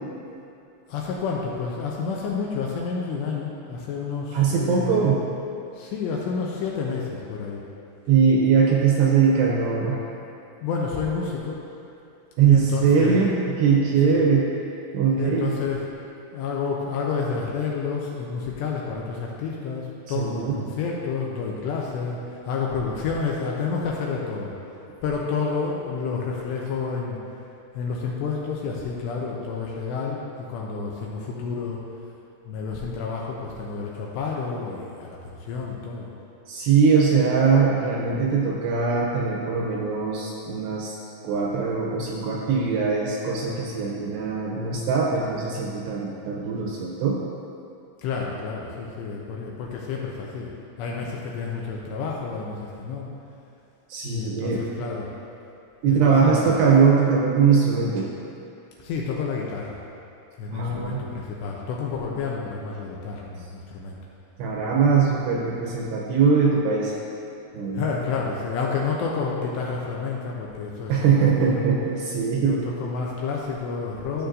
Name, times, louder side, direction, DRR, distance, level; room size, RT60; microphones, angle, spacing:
voice 1, 0.9-5.2 5.7-7.6 10.6-11.6 12.5-13.2 14.0-14.3 15.2-15.8 16.3-24.5 25.0-27.2 27.7-30.2 30.5-31.8 32.5-36.1 48.0-50.5 50.8-53.1 54.0-55.1 55.9-56.5 58.8-59.8 60.4-64.0 64.9-65.0 67.7-70.9 71.4-71.6 72.4-74.3, left 5 dB, 80° left, -2 dB, 2.6 m, -29 dB
voice 2, 4.3-5.2 8.1-10.0 12.4-13.3 13.6-14.4 14.9-15.6 20.2-20.6 36.5-41.0 41.2-47.2 53.9-54.6 55.8-58.1 60.5-61.1 64.4-66.9 67.5-67.8 70.9-72.6, right 6 dB, 80° right, -2 dB, 2.5 m, -21 dB
13.5 x 6.9 x 2.6 m, 2.7 s
omnidirectional pair, 5.5 m